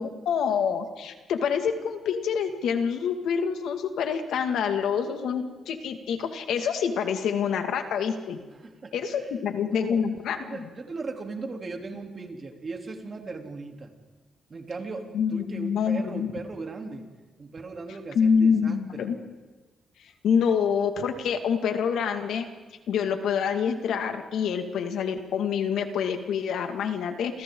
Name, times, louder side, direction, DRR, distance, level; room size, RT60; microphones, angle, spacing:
voice 1, 0.0-8.4 8.9-10.7 15.1-16.3 18.1-19.2 20.2-22.5 22.9-27.4, left 7 dB, 85° left, 6 dB, 2.1 m, -26 dB
voice 2, 8.5-9.3 9.6-10.1 10.4-13.9 14.5-17.1 17.4-19.1, right 3 dB, 40° right, 2 dB, 3.2 m, -38 dB
29.0 x 28.0 x 3.9 m, 1.3 s
cardioid pair, 105°, 0 cm